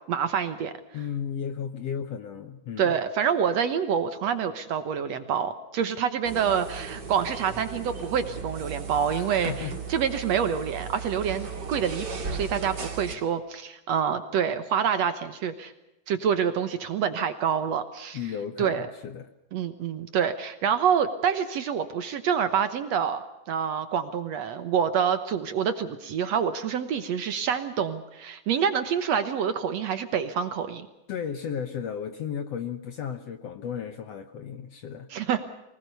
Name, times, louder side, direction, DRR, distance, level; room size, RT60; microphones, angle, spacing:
voice 1, 0.1-0.7 2.8-15.7 16.1-18.2 18.6-18.9 19.5-30.9 35.1-35.5, right 7 dB, 65° right, 10 dB, 2.0 m, -27 dB
voice 2, 0.9-3.0 9.1-9.7 18.1-19.3 31.1-35.1, left 8 dB, 65° left, 9 dB, 1.7 m, -34 dB
sound 1, 6.2-13.1, right 5 dB, 35° right, 2.6 m, -36 dB
24.0 x 19.5 x 6.8 m, 0.91 s
omnidirectional pair, 3.9 m